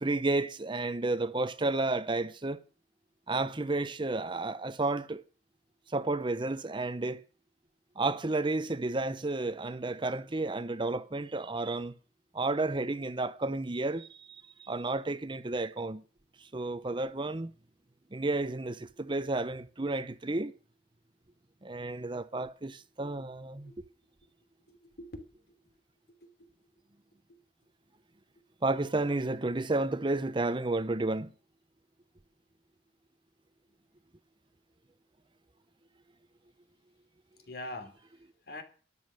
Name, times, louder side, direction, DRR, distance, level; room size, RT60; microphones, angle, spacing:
voice 1, 0.0-2.6 3.3-5.2 5.9-7.2 8.0-11.9 12.3-16.0 16.4-17.5 18.1-20.5 21.6-23.7 28.6-31.3, right 2 dB, 25° right, 0.7 m, -31 dB
voice 2, 24.7-25.6 26.2-26.5 27.3-27.4 37.4-38.6, left 1 dB, 60° left, 3.1 m, -45 dB
12.5 x 11.0 x 6.4 m
head